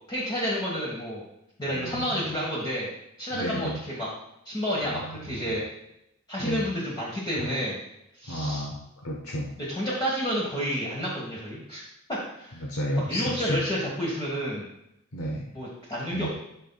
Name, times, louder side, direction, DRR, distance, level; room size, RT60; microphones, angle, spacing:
voice 1, 0.1-1.2 1.6-2.9 3.2-4.1 4.4-5.6 6.3-7.8 8.1-8.6 9.7-11.8 12.1-12.6 13.1-14.7 15.5-16.3, equal, 20° left, -5 dB, 1.4 m, -30 dB
voice 2, 1.7-2.2 3.3-3.8 4.8-5.6 6.4-6.7 7.4-7.5 8.3-9.5 12.5-13.6 15.1-15.5 16.1-16.3, equal, 85° left, 0 dB, 0.9 m, -32 dB
13.0 x 5.5 x 2.3 m, 0.82 s
head